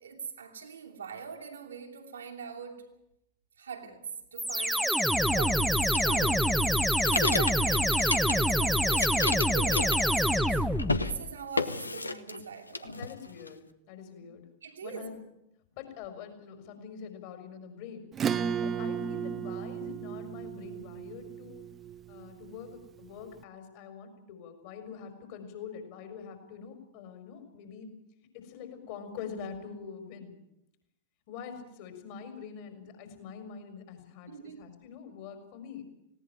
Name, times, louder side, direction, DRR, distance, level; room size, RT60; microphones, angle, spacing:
voice 1, 0.0-2.9 3.6-6.7 7.1-10.6 11.0-13.0 14.6-15.1 34.3-34.6, right 6 dB, 70° right, 2.7 m, -42 dB
sound 1, 4.4-11.2, equal, ahead, 1.1 m, -26 dB
sound 2, 5.9-8.6 8.8-10.5 10.8-11.1 11.6-12.4 12.7-13.5, left 3 dB, 80° left, 0.9 m, -32 dB
voice 2, 12.8-14.5 14.8-15.2 15.7-18.1 18.6-21.6 22.1-27.9 28.3-30.3 31.3-35.9, left 6 dB, 50° left, 4.8 m, -44 dB
Acoustic guitar / Strum, 18.1-23.1, right 7 dB, 25° right, 1.0 m, -34 dB
19.0 x 17.5 x 9.1 m
figure-of-eight pair, 90°, 0 cm